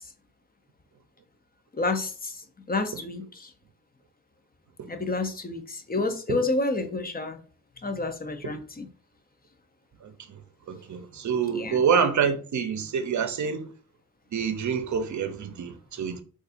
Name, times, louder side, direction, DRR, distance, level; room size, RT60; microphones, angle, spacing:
voice 1, 1.7-3.5 4.9-7.4 7.8-8.9 11.5-11.8, left 2 dB, 25° left, 0.6 m, -29 dB
voice 2, 10.0-10.4 10.7-13.7 14.3-16.2, right 6 dB, 50° right, 0.7 m, -27 dB
4.0 x 2.4 x 2.5 m
cardioid pair, 55°, 37 cm